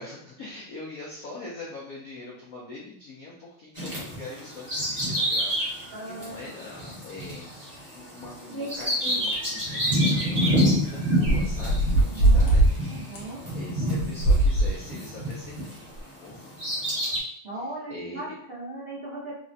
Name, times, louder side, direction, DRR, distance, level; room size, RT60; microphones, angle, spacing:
voice 1, 0.0-12.8 13.5-16.5 17.9-18.3, left 2 dB, 80° left, -5 dB, 0.8 m, -42 dB
Bird vocalization bird call bird song, 3.8-15.8 16.3-17.2, equal, 35° right, 0.8 m, -28 dB
voice 2, 5.9-6.4 12.1-12.5 12.9-13.4 13.7-13.9 17.4-19.4, right 2 dB, 75° right, -9 dB, 0.5 m, -38 dB
sound 1, 9.3-9.4 9.9-10.0 10.9-11.0 11.2-12.7 13.1-13.2 14.0-14.7 15.3-15.4 16.0-16.1, right 1 dB, 65° left, 1.1 m, -20 dB
3.6 x 2.1 x 2.6 m, 0.65 s
omnidirectional pair, 2.4 m